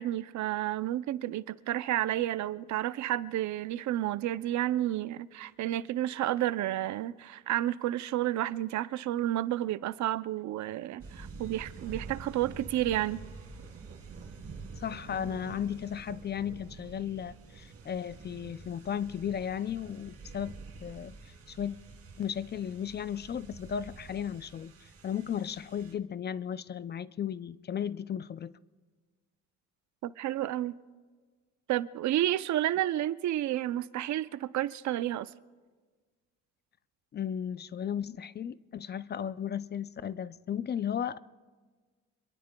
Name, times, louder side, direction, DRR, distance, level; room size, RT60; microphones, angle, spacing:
voice 1, 0.0-13.2 30.0-30.8 31.7-35.3, right 13 dB, 70° right, 0.5 m, -31 dB
sound 1, 11.0-25.9, right 4 dB, 50° right, 2.4 m, -47 dB
voice 2, 14.8-20.6 20.8-21.1 21.5-21.8 22.2-28.5 37.1-41.2, left 8 dB, 35° left, 0.4 m, -35 dB
26.5 x 22.0 x 2.2 m
cardioid pair, 90°, 30 cm